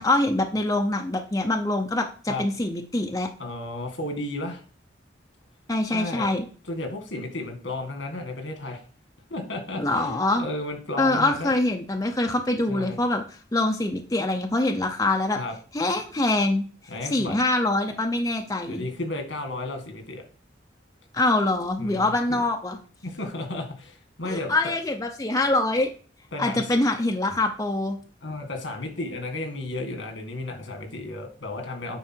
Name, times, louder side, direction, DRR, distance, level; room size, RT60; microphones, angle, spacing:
voice 1, 0.0-3.3 5.7-6.5 9.8-10.5 11.0-13.2 13.5-15.4 15.7-16.6 17.0-18.9 21.1-22.8 24.2-25.9 26.4-28.0, left 2 dB, 20° left, 3 dB, 0.6 m, -24 dB
voice 2, 3.4-4.6 5.9-6.3 6.7-8.8 9.3-11.5 12.7-13.0 15.4-15.5 16.9-17.4 18.7-20.2 21.8-22.4 23.0-24.7 26.3-26.7 28.2-32.0, left 2 dB, 80° left, 4 dB, 2.0 m, -33 dB
9.1 x 3.8 x 4.5 m, 0.40 s
head